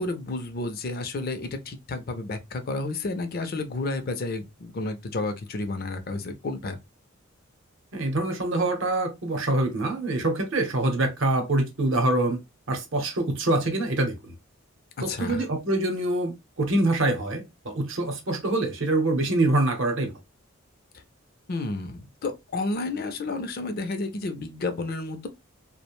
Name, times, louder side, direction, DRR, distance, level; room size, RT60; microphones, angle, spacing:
voice 1, 0.0-6.8 15.1-15.4 21.5-25.3, left 2 dB, 45° left, 0.4 m, -31 dB
voice 2, 7.9-12.4 12.7-14.3 15.0-20.1, right 2 dB, 65° right, 0.7 m, -25 dB
2.4 x 2.1 x 2.9 m
head